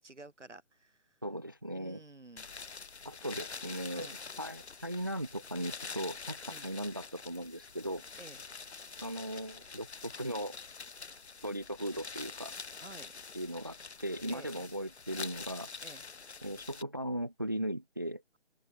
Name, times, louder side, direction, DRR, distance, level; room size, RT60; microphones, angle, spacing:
voice 1, 0.0-1.2 1.7-2.5 3.9-4.2 6.5-6.7 8.2-8.4 12.8-13.1 14.3-14.7 15.8-16.0, right 2 dB, 85° right, 6.7 m, -52 dB
voice 2, 1.2-2.0 3.0-4.1 4.4-8.0 9.0-10.5 11.4-12.5 13.3-15.7 16.4-18.2, equal, 20° right, 0.5 m, -38 dB
sound 1, 2.4-16.8, left 4 dB, 70° left, 2.0 m, -46 dB
open air
figure-of-eight pair, 150°, 35 cm